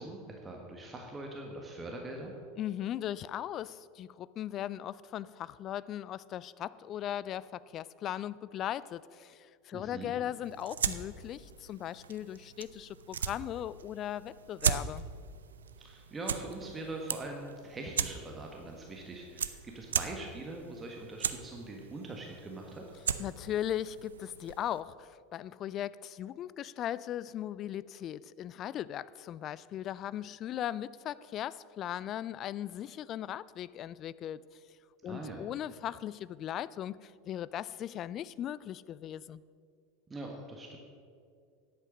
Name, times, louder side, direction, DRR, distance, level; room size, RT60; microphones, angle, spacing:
voice 1, 0.0-2.3 9.7-10.1 15.8-22.8 35.0-35.4 40.1-40.8, right 2 dB, 20° right, 1 dB, 1.5 m, -42 dB
voice 2, 2.6-15.1 23.2-34.4 35.0-39.4, left 11 dB, 40° left, 19 dB, 0.3 m, -38 dB
sound 1, 10.4-24.8, right 7 dB, 75° right, 0.5 m, -38 dB
10.5 x 8.4 x 6.4 m, 2.3 s
figure-of-eight pair, 80°, 0 cm